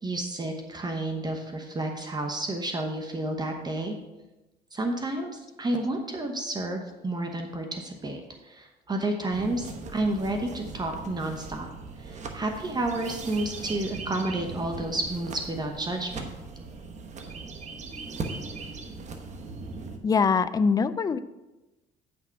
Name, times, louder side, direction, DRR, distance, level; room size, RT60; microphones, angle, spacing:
voice 1, 0.0-3.9 4.7-11.7 12.0-16.3, right 2 dB, 25° right, 4 dB, 1.0 m, -31 dB
sound 1, 9.3-20.0, right 4 dB, 45° right, 1.1 m, -39 dB
voice 2, 20.0-21.2, left 5 dB, 20° left, 13 dB, 0.4 m, -23 dB
8.9 x 6.1 x 4.6 m, 1.1 s
cardioid pair, 110°, 17 cm